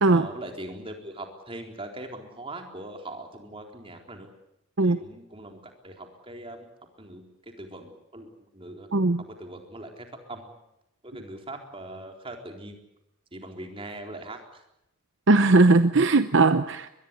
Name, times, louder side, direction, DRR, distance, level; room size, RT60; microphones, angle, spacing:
voice 1, 0.1-4.3 4.8-6.7 7.0-8.9 9.2-10.5 11.0-12.8 13.3-14.6, right 1 dB, 25° right, 3 dB, 3.9 m, -41 dB
voice 2, 8.9-9.2 15.3-16.9, right 3 dB, 60° right, 11 dB, 0.8 m, -19 dB
23.5 x 21.5 x 8.3 m, 0.84 s
head